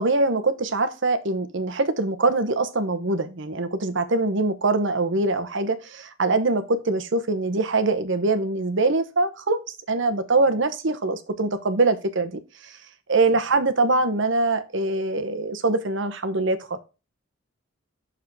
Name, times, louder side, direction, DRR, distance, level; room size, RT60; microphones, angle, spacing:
voice 1, 0.0-9.6 9.9-12.7 13.1-16.8, right 3 dB, 65° right, 10 dB, 1.1 m, -23 dB
7.6 x 6.6 x 4.6 m, 0.30 s
head